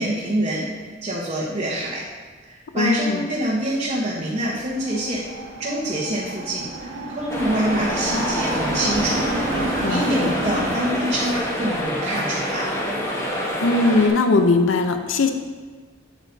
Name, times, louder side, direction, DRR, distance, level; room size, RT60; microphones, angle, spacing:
voice 1, 0.0-2.0 2.4-5.2 5.6-9.2 9.5-9.6 9.9-12.6, right 1 dB, 35° right, -5 dB, 1.0 m, -26 dB
voice 2, 2.8-3.2 9.8-10.3 13.6-15.3, left 3 dB, 70° left, 7 dB, 0.6 m, -20 dB
sound 1, 4.5-11.9, right 1 dB, 80° right, 1.5 m, -30 dB
sound 2, 7.3-14.1, equal, 15° left, 1.0 m, -27 dB
8.1 x 7.9 x 2.7 m, 1.4 s
head